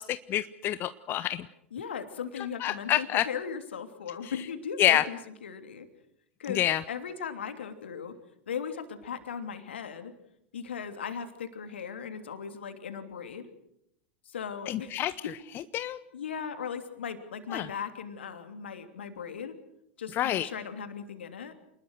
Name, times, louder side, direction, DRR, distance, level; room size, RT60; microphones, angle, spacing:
voice 1, 0.0-1.5 2.6-3.3 4.8-5.0 6.5-6.8 14.7-15.1 15.7-16.0 17.5-17.7 20.2-20.5, left 13 dB, 35° left, 14 dB, 0.8 m, -27 dB
voice 2, 1.7-5.9 6.4-8.1 8.5-10.1 10.5-13.5 14.2-15.0 15.2-15.3 16.1-19.5 20.0-21.5, left 7 dB, 70° left, 8 dB, 3.0 m, -38 dB
28.0 x 20.5 x 6.5 m, 0.78 s
figure-of-eight pair, 90°, 6 cm